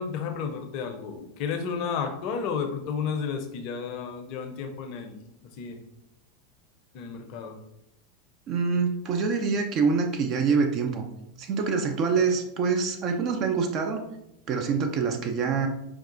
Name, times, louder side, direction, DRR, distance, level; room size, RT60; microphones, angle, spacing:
voice 1, 0.0-5.1 5.6-5.8 6.9-7.6, left 6 dB, 45° left, 5 dB, 0.5 m, -32 dB
voice 2, 8.5-11.1 11.4-14.0 14.5-15.7, right 5 dB, 40° right, 5 dB, 0.4 m, -25 dB
4.6 x 2.3 x 2.5 m, 0.82 s
figure-of-eight pair, 85°, 0 cm